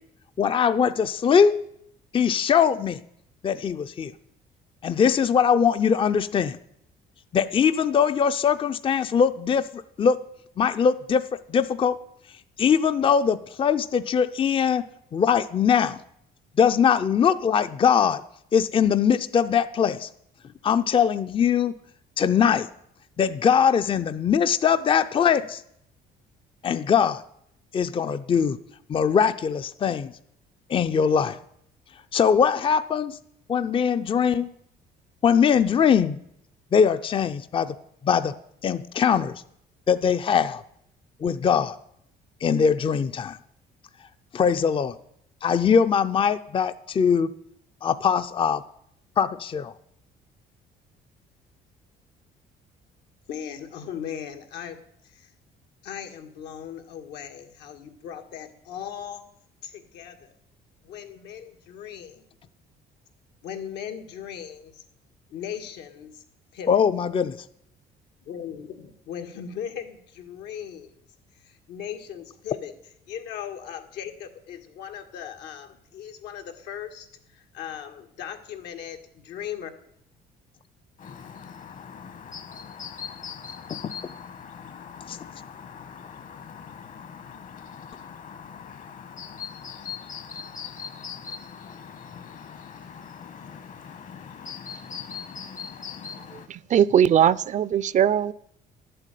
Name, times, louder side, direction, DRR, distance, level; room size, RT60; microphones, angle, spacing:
voice 1, 0.4-1.5 2.1-3.0 3.4-4.1 4.8-6.6 7.3-10.2 10.6-11.2 11.5-12.0 12.6-14.8 15.1-16.0 16.6-18.2 18.5-20.1 20.6-21.8 22.2-22.7 23.2-25.6 26.6-27.2 27.7-28.6 28.9-30.1 30.7-31.4 32.1-33.2 33.5-34.5 35.2-36.2 36.7-37.7 38.0-38.3 38.6-39.4 39.9-40.6 41.2-41.7 42.4-43.4 44.3-45.0 45.4-47.3 47.8-48.6 49.2-49.7 66.7-67.4 83.7-83.8 85.1-85.2, left 7 dB, 30° left, 0.5 m, -21 dB
voice 2, 53.3-54.8 55.0-55.3 55.8-59.2 59.6-60.3 60.8-62.2 63.4-64.8 65.3-66.2 66.5-66.8 68.3-71.0 71.4-72.7 73.1-77.1 77.3-79.7, left 9 dB, 80° left, 1.9 m, -38 dB
Chirp tweet, 81.0-96.5, left 7 dB, 50° left, 1.3 m, -41 dB
voice 3, 96.5-98.3, right 9 dB, 45° right, 0.5 m, -20 dB
11.5 x 7.8 x 9.2 m
cardioid pair, 110°, 17 cm